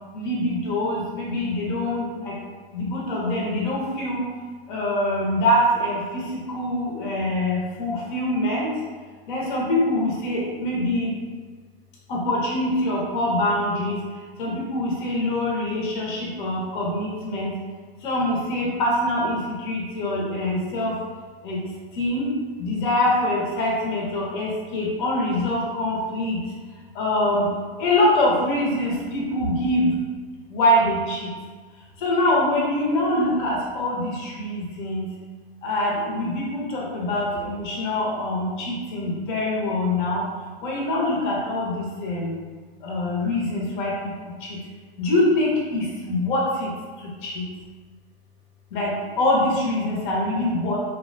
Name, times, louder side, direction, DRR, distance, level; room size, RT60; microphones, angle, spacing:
voice 1, 0.1-2.4 2.7-4.2 4.7-8.7 9.3-11.1 12.1-14.0 14.4-17.5 18.0-21.0 21.4-21.6 22.0-22.3 22.6-26.4 26.9-27.5 27.8-29.9 30.5-31.3 32.0-35.0 35.6-40.2 40.6-42.4 42.8-44.1 44.4-44.6 45.0-46.7 47.0-47.4 48.7-50.8, left 1 dB, 50° left, -3 dB, 0.7 m, -24 dB
2.4 x 2.1 x 2.5 m, 1.5 s
hypercardioid pair, 145°, 32 cm